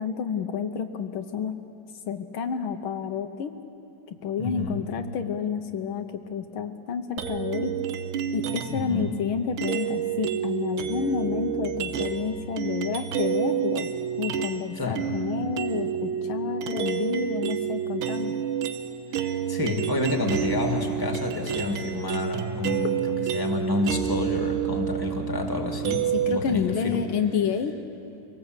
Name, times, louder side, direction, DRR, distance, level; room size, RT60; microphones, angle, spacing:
voice 1, 0.0-1.6 2.1-3.5 4.1-7.7 8.3-13.9 14.2-18.4 26.1-27.8, left 7 dB, 80° left, 7 dB, 1.7 m, -29 dB
voice 2, 4.4-4.8 8.7-9.1 14.8-15.1 19.2-22.9 23.3-27.1, left 2 dB, 10° left, 3 dB, 2.0 m, -29 dB
sound 1, 7.2-8.9 9.6-14.7 15.0-26.4, right 9 dB, 80° right, 1.7 m, -29 dB
24.5 x 18.5 x 8.0 m, 2.8 s
omnidirectional pair, 2.3 m